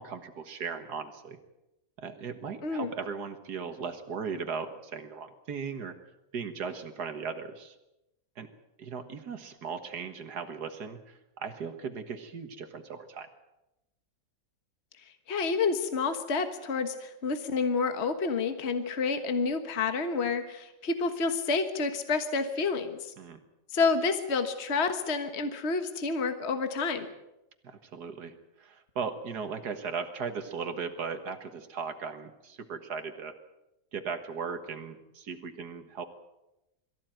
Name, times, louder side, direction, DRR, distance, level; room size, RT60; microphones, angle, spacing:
voice 1, 0.0-1.4 2.0-6.0 6.3-7.8 8.4-8.5 8.8-13.3 23.2-23.4 27.6-33.3 33.9-36.0, right 5 dB, 90° right, 7 dB, 2.1 m, -37 dB
voice 2, 2.6-2.9 15.3-23.1 23.7-27.1, left 4 dB, 45° left, 8 dB, 1.6 m, -29 dB
23.0 x 15.0 x 9.2 m, 0.91 s
omnidirectional pair, 1.7 m